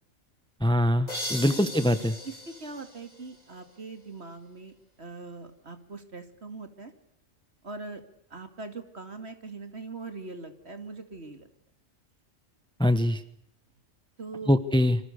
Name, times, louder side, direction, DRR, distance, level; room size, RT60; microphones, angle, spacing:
voice 1, 0.6-2.1 12.8-13.2 14.5-15.0, left 1 dB, 5° left, 12 dB, 1.2 m, -23 dB
sound 1, 1.1-3.8, left 1 dB, 30° left, 4.3 m, -39 dB
voice 2, 2.2-4.7 5.0-6.9 7.6-8.0 8.3-11.5 14.2-14.6, right 3 dB, 55° right, 7 dB, 2.8 m, -41 dB
28.0 x 25.5 x 6.7 m, 0.74 s
omnidirectional pair, 1.3 m